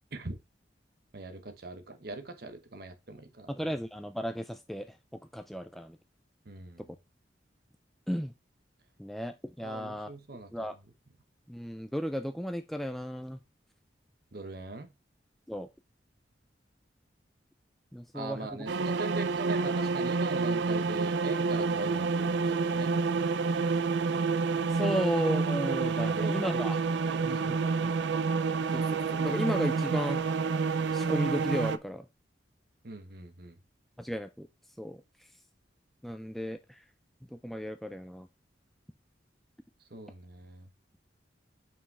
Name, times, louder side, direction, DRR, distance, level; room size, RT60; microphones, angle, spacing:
voice 1, 1.1-3.7 6.4-6.9 9.6-10.7 14.3-14.9 18.1-22.9 26.0-26.7 27.0-27.9 32.8-33.6 39.9-40.7, right 2 dB, 55° right, 1.1 m, -41 dB
voice 2, 3.5-4.9 5.3-6.0 8.1-8.3 9.0-10.1 10.5-10.7 11.5-13.4 15.5-15.7 17.9-18.5 24.7-26.8 27.3-27.4 28.7-30.2 30.9-32.0 34.0-34.5 34.8-35.0 36.0-36.8 37.3-38.3, equal, ahead, 0.3 m, -34 dB
sound 1, 18.7-31.8, right 4 dB, 75° right, 0.4 m, -29 dB
5.6 x 5.4 x 4.1 m
head